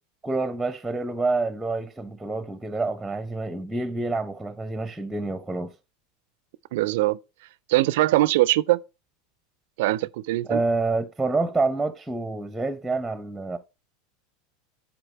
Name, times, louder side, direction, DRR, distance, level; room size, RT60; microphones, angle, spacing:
voice 1, 0.2-5.7 10.5-13.6, right 3 dB, 5° right, 0.6 m, -27 dB
voice 2, 6.7-7.2 7.7-8.8 9.8-10.6, right 17 dB, 60° right, 0.3 m, -22 dB
11.0 x 4.4 x 4.1 m
figure-of-eight pair, 80°, 0 cm